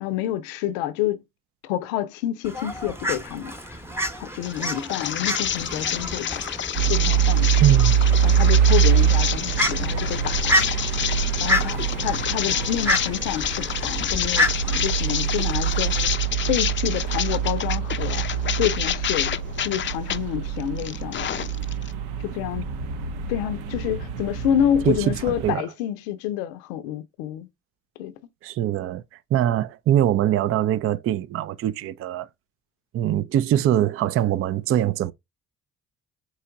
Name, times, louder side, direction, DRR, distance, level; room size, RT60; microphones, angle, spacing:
voice 1, 0.0-1.2 1.6-3.8 4.2-6.4 6.9-7.6 8.2-10.6 11.4-16.1 16.5-21.5 22.2-22.6 23.3-27.5 28.0-28.1, left 11 dB, 75° left, 0.6 m, -28 dB
Fowl, 2.4-16.1, left 1 dB, 5° right, 0.9 m, -30 dB
sound 1, 4.4-20.2 20.6-21.9, left 9 dB, 30° left, 0.5 m, -28 dB
sound 2, 6.8-25.5, right 8 dB, 70° right, 0.7 m, -24 dB
voice 2, 7.6-8.0 24.9-25.7 28.4-29.0 29.3-32.3 32.9-35.1, right 11 dB, 35° right, 0.4 m, -22 dB
4.6 x 3.0 x 3.4 m
hypercardioid pair, 45°, 40 cm